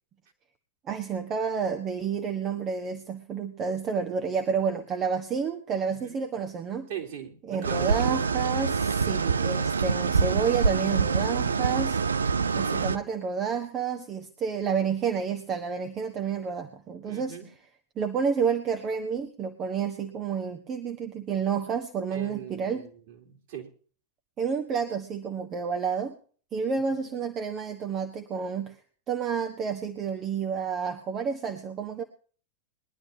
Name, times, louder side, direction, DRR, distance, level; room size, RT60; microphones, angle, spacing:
voice 1, 0.9-6.9 7.5-12.0 12.5-17.4 18.0-22.9 24.4-26.1 26.5-28.7 29.1-32.0, right 6 dB, 30° right, 4 dB, 1.3 m, -30 dB
voice 2, 6.9-8.2 12.5-12.9 17.1-17.5 22.1-23.7 27.0-27.3, right 7 dB, 50° right, 0 dB, 3.3 m, -40 dB
sound 1, 7.6-13.0, right 5 dB, 75° right, 0.6 m, -25 dB
22.0 x 11.5 x 2.8 m, 0.42 s
figure-of-eight pair, 90°, 0 cm